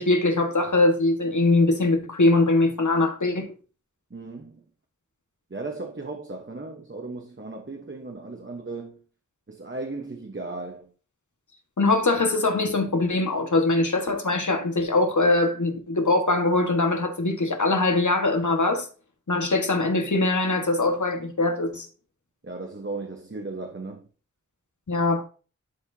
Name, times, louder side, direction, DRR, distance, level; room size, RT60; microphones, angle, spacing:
voice 1, 0.0-3.5 11.8-18.9 19.3-21.9 24.9-25.2, left 2 dB, 75° left, 1.6 m, -22 dB
voice 2, 4.1-4.6 5.5-9.0 9.5-10.9 22.4-24.1, right 3 dB, 40° right, 1.1 m, -36 dB
11.5 x 4.4 x 2.8 m
wide cardioid pair, 55°, 30 cm